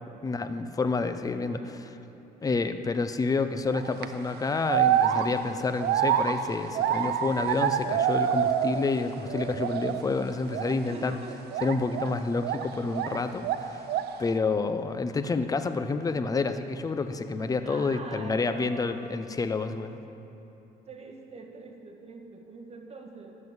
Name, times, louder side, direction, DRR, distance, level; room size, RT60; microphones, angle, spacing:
voice 1, 0.2-2.0 2.4-11.2 11.6-13.8 14.2-20.0, left 4 dB, 20° left, 9 dB, 0.6 m, -29 dB
sound 1, 3.7-4.1 4.7-9.0 9.3-10.1 10.5-10.7 11.5-13.2 13.4-14.2, right 9 dB, 70° right, 0.6 m, -27 dB
voice 2, 10.8-11.4 17.6-19.0 20.9-23.4, right 4 dB, 40° right, 3 dB, 1.5 m, -44 dB
11.5 x 7.5 x 7.9 m, 2.9 s
cardioid pair, 110°, 17 cm